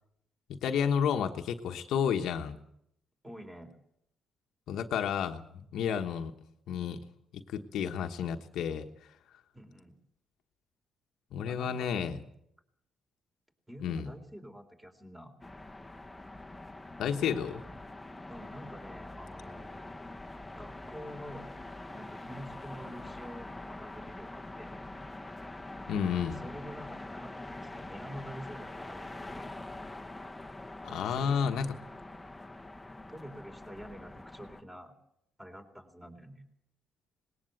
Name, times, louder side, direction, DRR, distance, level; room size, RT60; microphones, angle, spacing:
voice 1, 0.5-2.6 4.7-6.3 6.7-7.0 7.3-8.9 11.3-12.2 13.8-14.1 17.0-17.6 25.9-26.4 30.8-31.7, left 7 dB, 80° left, 6 dB, 1.2 m, -31 dB
voice 2, 3.2-3.8 9.5-10.0 11.5-12.2 13.7-15.3 18.3-19.7 20.6-21.6 21.9-24.8 26.3-29.5 30.9-31.7 33.1-34.9 35.4-36.4, equal, 10° right, 4 dB, 3.8 m, -47 dB
sound 1, 15.4-34.6, left 2 dB, 10° left, 1.3 m, -44 dB
19.5 x 18.0 x 7.9 m, 0.75 s
cardioid pair, 90°, 0 cm